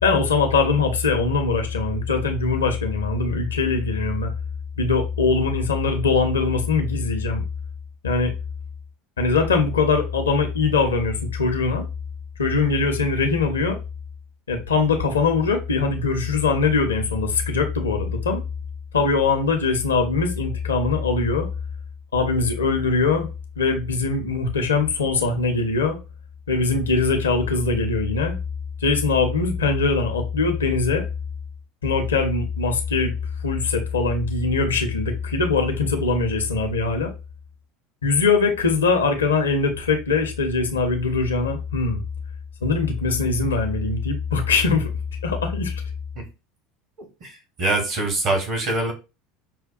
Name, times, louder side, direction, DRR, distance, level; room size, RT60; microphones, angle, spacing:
voice 1, 0.0-4.3 4.8-7.4 8.0-8.3 9.2-11.9 12.4-13.8 14.5-18.4 18.9-21.5 22.1-23.3 23.6-26.0 26.5-28.4 28.8-31.0 31.8-33.1 33.4-37.1 38.0-42.0 42.6-44.9 45.2-45.7, left 4 dB, 80° left, 0.6 m, -22 dB
voice 2, 47.0-48.9, right 2 dB, 45° right, 1.4 m, -24 dB
5.6 x 2.2 x 2.5 m
figure-of-eight pair, 70°, 0 cm